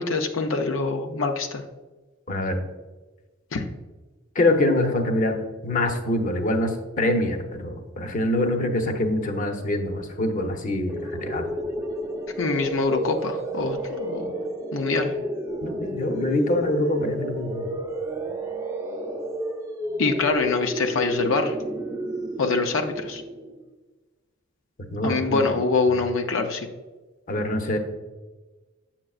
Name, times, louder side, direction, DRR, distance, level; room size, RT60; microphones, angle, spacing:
voice 1, 0.0-1.6 3.5-3.6 12.4-14.3 14.7-15.1 20.0-21.6 22.4-23.2 25.0-26.7, left 3 dB, 90° left, 4 dB, 0.6 m, -24 dB
voice 2, 2.3-2.6 4.3-5.4 5.6-11.5 15.6-17.8 24.9-25.5 27.3-27.8, left 1 dB, 45° left, 5 dB, 0.8 m, -25 dB
sound 1, 10.9-23.7, right 1 dB, 15° right, 0.5 m, -31 dB
7.6 x 7.3 x 2.4 m, 1.2 s
head